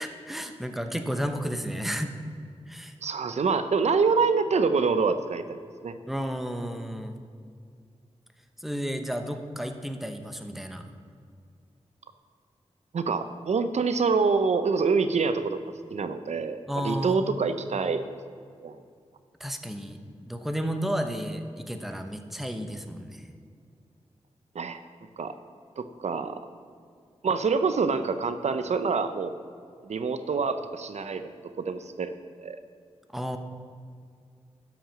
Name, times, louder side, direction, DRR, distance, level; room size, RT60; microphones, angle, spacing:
voice 1, 0.0-2.1 2.7-2.9 6.1-7.1 8.6-10.8 16.7-17.3 19.4-23.2 33.1-33.4, equal, ahead, 6 dB, 0.9 m, -32 dB
voice 2, 3.0-6.0 12.9-15.6 15.9-18.1 18.6-18.8 24.5-24.8 25.2-25.4 25.8-26.4 27.2-29.3 29.8-32.6, right 4 dB, 75° right, 10 dB, 0.6 m, -26 dB
11.5 x 6.1 x 7.4 m, 2.3 s
wide cardioid pair, 100°, 12 cm